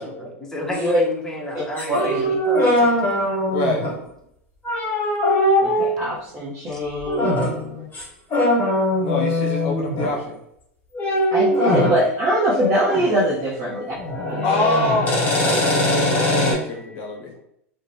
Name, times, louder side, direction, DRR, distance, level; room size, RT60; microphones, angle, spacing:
voice 1, 0.0-3.0 6.7-6.8 13.7-14.1 16.5-17.0, left 1 dB, 5° left, -1 dB, 0.7 m, -33 dB
sound 1, 0.7-0.9 1.8-4.0 4.6-6.0 7.0-7.6 7.9-8.0 8.3-10.2 10.9-12.0 12.6-13.1 13.4-16.5, left 1 dB, 25° left, 1.3 m, -21 dB
voice 2, 0.7-1.0 1.5-2.3 5.6-7.9 11.3-14.0 14.3-14.6, right 1 dB, 35° right, -8 dB, 0.8 m, -23 dB
voice 3, 3.5-4.0 9.0-10.4 14.4-17.4, left 2 dB, 60° left, 0 dB, 0.5 m, -26 dB
2.4 x 2.0 x 3.3 m, 0.76 s
hypercardioid pair, 100°, 7 cm